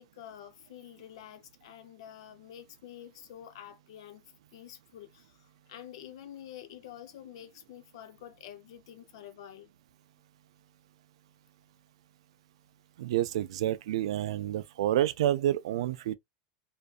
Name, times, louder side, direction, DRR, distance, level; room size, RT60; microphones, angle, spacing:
voice 1, 0.0-4.2 4.5-9.7, left 10 dB, 75° left, 0.6 m, -48 dB
voice 2, 13.0-16.1, right 12 dB, 90° right, 0.3 m, -29 dB
2.6 x 2.3 x 2.3 m
supercardioid pair, 160°, 3 cm